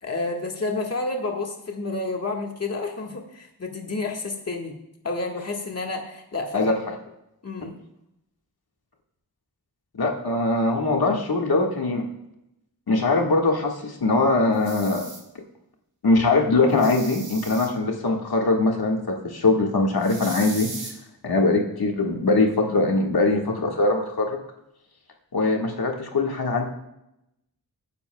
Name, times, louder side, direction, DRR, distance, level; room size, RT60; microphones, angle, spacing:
voice 1, 0.0-4.8 5.0-6.7 7.4-7.8 22.6-22.7, left 3 dB, 40° left, 1 dB, 1.7 m, -30 dB
voice 2, 6.5-6.9 9.9-12.0 12.9-15.0 16.0-20.7 21.2-24.4 25.3-26.6, left 2 dB, 70° left, 1 dB, 1.8 m, -22 dB
sound 1, 14.5-15.2 16.7-17.7 20.0-20.9, right 3 dB, 65° right, 2.7 m, -37 dB
22.5 x 10.5 x 2.3 m, 0.85 s
wide cardioid pair, 85°, 38 cm